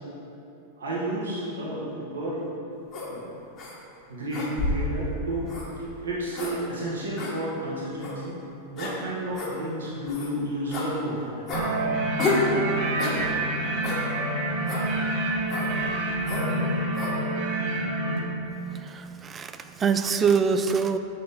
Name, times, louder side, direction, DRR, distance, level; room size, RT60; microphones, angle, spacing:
voice 1, 0.8-2.4 3.1-3.2 4.1-8.3 8.7-11.4, right 1 dB, 65° right, -6 dB, 1.3 m, -31 dB
sound 1, 2.9-3.1 3.6-3.7 4.3-4.9 5.5-5.7 6.3-6.5 7.2-7.3 8.0-8.2 8.8-8.9 9.3-9.5 10.1-10.3 10.7-10.9 11.5-11.7 12.2-12.5 13.0-13.2 13.8-14.0 14.7-14.9 15.5-15.7 16.2-16.5 16.9-17.2, left 3 dB, 30° left, 1.3 m, -29 dB
sound 2, 11.5-18.2, right 2 dB, 45° right, 1.0 m, -27 dB
voice 2, 18.8-21.0, right 6 dB, 20° right, 9 dB, 0.3 m, -24 dB
6.3 x 4.2 x 5.3 m, 2.9 s
figure-of-eight pair, 90°, 0 cm